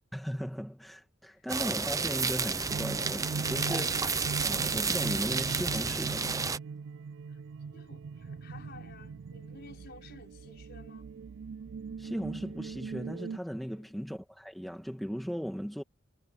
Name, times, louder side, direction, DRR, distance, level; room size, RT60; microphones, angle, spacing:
voice 1, 0.1-4.1 4.4-6.5 12.0-15.8, equal, ahead, 1.9 m, -37 dB
sound 1, 1.5-6.6, right 4 dB, 15° right, 0.7 m, -31 dB
sound 2, 2.7-13.4, right 5 dB, 60° right, 0.4 m, -41 dB
voice 2, 7.7-11.1 13.7-14.0, left 3 dB, 50° left, 5.7 m, -53 dB
head